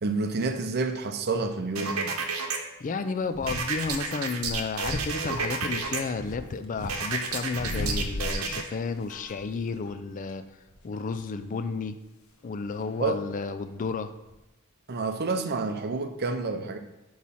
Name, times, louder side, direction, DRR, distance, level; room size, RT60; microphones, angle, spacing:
voice 1, 0.0-2.1 13.0-13.2 14.9-16.8, right 3 dB, 50° right, 7 dB, 0.6 m, -29 dB
sound 1, 1.8-2.6 3.5-6.0 6.9-8.6, right 5 dB, 85° right, 0.9 m, -31 dB
voice 2, 2.8-10.4 10.8-12.0 12.4-14.1, left 4 dB, 35° left, 10 dB, 0.4 m, -32 dB
sound 2, 3.3-4.0 4.4-6.9 7.2-8.7 9.0-10.3 10.7-10.9 12.6-13.9 14.3-14.4, left 1 dB, 70° left, 0.8 m, -36 dB
8.2 x 3.2 x 5.5 m, 0.98 s
head